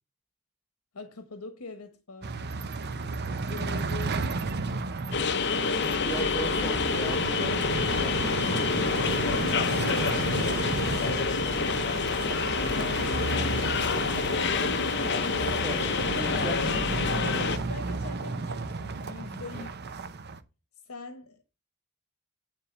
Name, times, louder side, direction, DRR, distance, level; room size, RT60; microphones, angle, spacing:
voice 1, 0.9-2.4 3.5-4.3 8.8-12.2 12.6-14.8 16.1-16.5 17.0-19.9 20.8-21.4, left 3 dB, 85° left, 1.1 m, -43 dB
sound 1, 2.2-20.4, right 3 dB, 50° right, 0.7 m, -33 dB
sound 2, 5.1-17.6, left 5 dB, 55° left, 0.8 m, -27 dB
voice 2, 5.8-7.6 7.9-8.7 15.4-16.5 19.5-19.7, right 2 dB, 5° right, 1.1 m, -39 dB
9.8 x 3.7 x 6.9 m
head